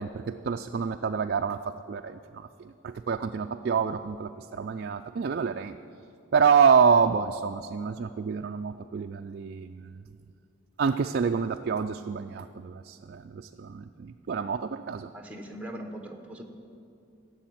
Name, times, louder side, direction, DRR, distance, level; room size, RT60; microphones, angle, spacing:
voice 1, 0.0-5.8 6.3-10.0 10.8-15.1, right 6 dB, 50° right, 6 dB, 0.3 m, -27 dB
voice 2, 15.1-16.4, right 1 dB, 5° right, 3 dB, 1.1 m, -40 dB
15.0 x 7.1 x 9.2 m, 2.6 s
head